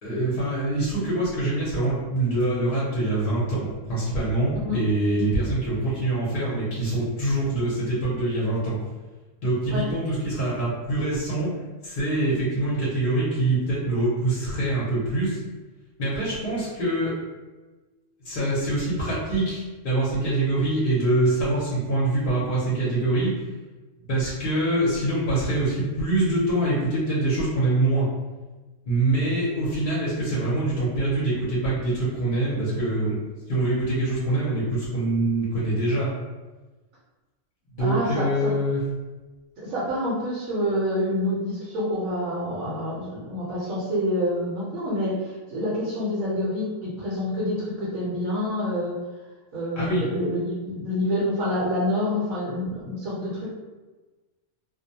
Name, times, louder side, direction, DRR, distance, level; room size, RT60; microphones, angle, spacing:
voice 1, 0.0-8.8 9.4-11.5 11.8-15.4 16.0-17.1 18.2-23.4 24.0-28.1 28.8-33.2 33.5-36.1 37.7-38.8 49.8-50.0, right 2 dB, 50° left, -7 dB, 0.8 m, -24 dB
voice 2, 37.8-38.5 39.6-48.9 49.5-53.5, left 1 dB, 80° right, -8 dB, 1.1 m, -27 dB
2.5 x 2.1 x 2.7 m, 1.2 s
omnidirectional pair, 1.4 m